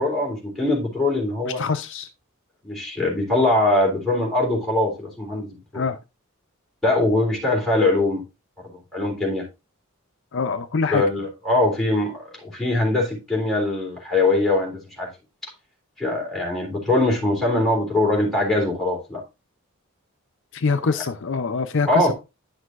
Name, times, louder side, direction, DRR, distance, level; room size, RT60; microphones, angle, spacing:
voice 1, 0.0-1.6 2.6-5.8 6.8-8.2 8.9-9.4 10.9-15.1 16.0-19.2 21.9-22.1, left 2 dB, ahead, 3.6 m, -22 dB
voice 2, 1.4-2.1 5.7-6.0 10.3-11.0 20.5-22.1, left 4 dB, 60° left, 0.6 m, -24 dB
10.5 x 6.5 x 2.5 m
head